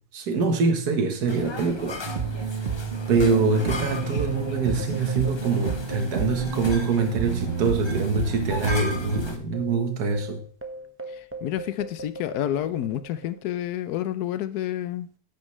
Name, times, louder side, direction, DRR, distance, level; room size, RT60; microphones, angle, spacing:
voice 1, 0.1-2.0 3.1-10.4, right 4 dB, 75° right, 1.8 m, -24 dB
sound 1, 1.3-9.4, left 2 dB, 25° left, 0.6 m, -37 dB
sound 2, 2.0-9.2, right 5 dB, 40° right, 1.0 m, -30 dB
sound 3, 3.0-7.8 8.0-8.2 8.8-13.6, right 2 dB, 10° right, 1.1 m, -41 dB
voice 2, 11.4-15.1, left 12 dB, 75° left, 1.2 m, -29 dB
10.5 x 8.9 x 3.2 m
omnidirectional pair, 1.7 m